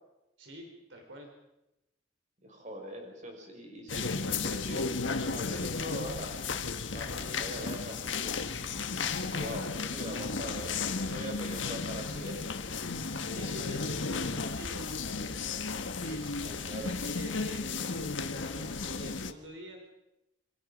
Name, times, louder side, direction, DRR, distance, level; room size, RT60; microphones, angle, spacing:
voice 1, 0.4-1.3 7.1-7.8 9.2-9.8 13.0-15.6 16.0-19.8, equal, 80° right, 2 dB, 4.3 m, -47 dB
voice 2, 2.4-6.4 6.9-8.5 9.2-12.4 16.4-16.9, equal, 40° right, 2 dB, 6.0 m, -42 dB
sound 1, 3.9-19.3, left 4 dB, 80° left, 1.4 m, -34 dB
sound 2, 7.5-17.5, left 1 dB, 10° left, 4.5 m, -56 dB
28.0 x 25.0 x 5.2 m, 0.92 s
head